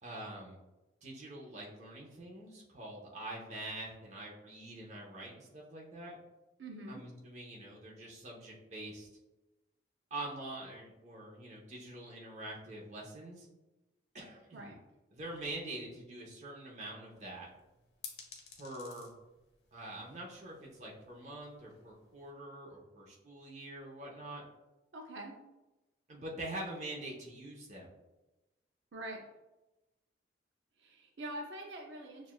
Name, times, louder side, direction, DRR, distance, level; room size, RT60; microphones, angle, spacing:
voice 1, 0.0-0.6 1.0-6.2 6.9-9.1 10.1-13.5 14.1-14.7 15.1-17.5 18.6-19.1 19.7-24.4 26.1-27.9, right 1 dB, 40° right, -2 dB, 0.9 m, -45 dB
voice 2, 6.6-7.0 14.5-14.8 24.9-25.4 28.9-29.2 30.8-32.3, right 1 dB, 80° right, 1 dB, 0.6 m, -44 dB
sound 1, 17.1-22.3, left 6 dB, 60° left, 0.8 m, -55 dB
6.3 x 2.4 x 2.3 m, 1.0 s
head